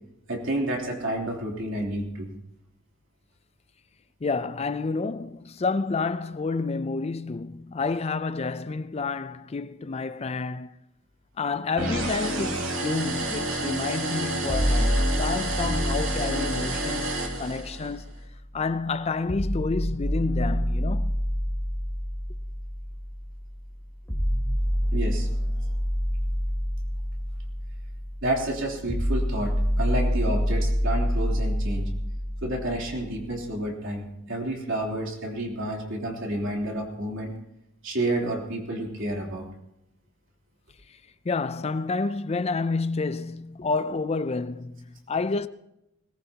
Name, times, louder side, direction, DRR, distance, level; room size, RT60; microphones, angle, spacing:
voice 1, 0.3-2.3 24.9-25.3 28.2-31.9 32.4-37.3 37.8-39.5, right 1 dB, 65° right, 3.4 m, -30 dB
voice 2, 4.2-10.8 11.4-18.1 18.5-21.2 40.9-41.0 41.2-45.5, left 4 dB, 30° left, 0.4 m, -29 dB
sound 1, 11.8-18.0, right 1 dB, 90° right, 3.5 m, -29 dB
sound 2, 14.5-18.5 19.3-33.3, equal, 10° left, 1.7 m, -28 dB
20.5 x 19.0 x 2.9 m
head